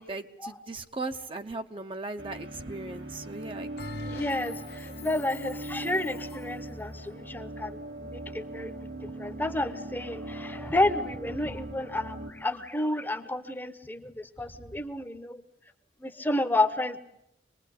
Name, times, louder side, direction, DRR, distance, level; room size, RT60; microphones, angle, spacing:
voice 1, 0.0-3.7, right 3 dB, 30° right, 6 dB, 0.9 m, -38 dB
sound 1, 2.2-12.3, right 2 dB, 85° right, 2.7 m, -40 dB
Bell, 3.8-6.6, left 3 dB, 60° left, 1.1 m, -44 dB
voice 2, 4.0-15.4 16.0-17.0, left 1 dB, 10° left, 10 dB, 1.0 m, -31 dB
25.5 x 20.5 x 8.4 m, 0.81 s
head